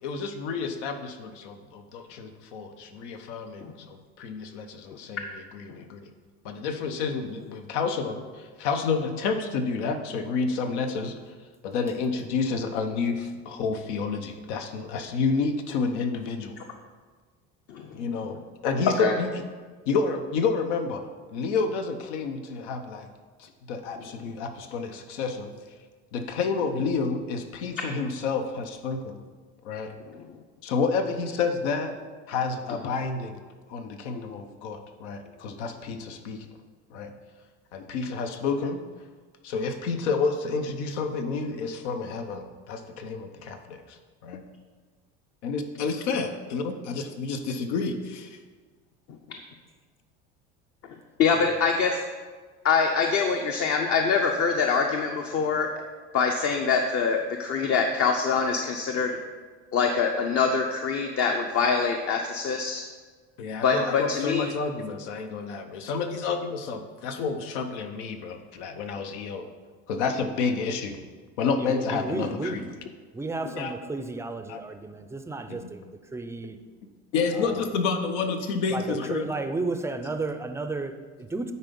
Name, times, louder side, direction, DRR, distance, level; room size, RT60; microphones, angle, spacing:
voice 1, 0.0-6.1 6.4-11.3 11.6-16.6 17.9-18.4 18.6-19.3 19.9-21.0 21.3-23.1 23.4-25.5 26.1-29.2 29.6-29.9 30.6-32.0 32.3-33.4 33.7-36.5 36.9-37.1 37.7-38.8 39.4-44.4 45.4-48.4 63.4-69.4 69.9-71.0 71.4-72.6 73.6-73.7 74.5-74.6 75.5-75.7 77.1-79.3, left 4 dB, 85° left, 7 dB, 1.0 m, -29 dB
voice 2, 17.7-18.0 19.0-19.1 30.1-30.2 51.2-52.0 52.6-55.7 56.1-59.2 59.7-62.8 63.6-64.5, left 5 dB, 45° left, 3 dB, 0.7 m, -24 dB
voice 3, 71.6-72.8 73.1-76.6 77.3-77.7 78.7-81.5, right 3 dB, 10° right, 8 dB, 0.4 m, -33 dB
9.6 x 4.2 x 5.3 m, 1.5 s
supercardioid pair, 115°, 34 cm